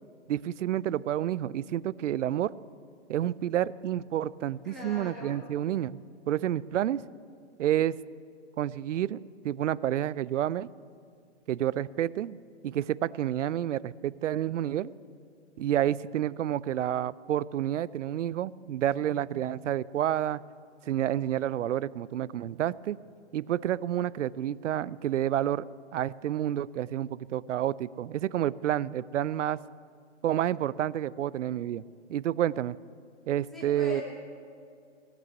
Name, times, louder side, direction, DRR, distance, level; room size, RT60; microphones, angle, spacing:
voice 1, 0.3-2.5 3.1-6.0 6.3-7.0 7.6-8.0 8.6-9.2 9.4-10.7 11.5-12.4 12.6-14.9 15.6-20.4 20.8-23.0 23.3-25.7 25.9-29.6 30.2-31.8 32.1-32.7 33.3-34.0, right 11 dB, 85° right, 20 dB, 0.5 m, -29 dB
voice 2, 4.6-5.4 33.5-34.0, left 3 dB, ahead, -6 dB, 1.1 m, -41 dB
18.0 x 6.2 x 9.4 m, 2.4 s
hypercardioid pair, 165°, 36 cm